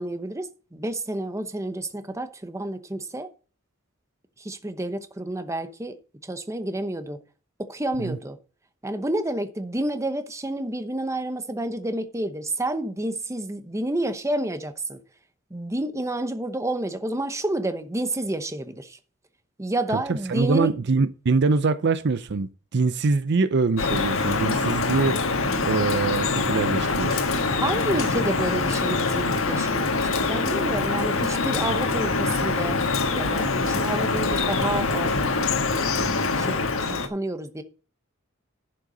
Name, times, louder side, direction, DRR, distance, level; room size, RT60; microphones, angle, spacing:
voice 1, 0.0-3.3 4.4-5.9 6.2-7.2 7.6-8.4 8.8-15.0 15.5-19.0 19.6-20.7 27.6-32.8 33.1-35.1 36.1-37.6, right 1 dB, 15° right, 0.9 m, -29 dB
voice 2, 20.1-25.2 25.7-27.2, right 4 dB, 55° right, 0.6 m, -24 dB
Drip, 23.8-37.1, left 3 dB, 85° left, 1.4 m, -24 dB
11.0 x 7.7 x 3.9 m
head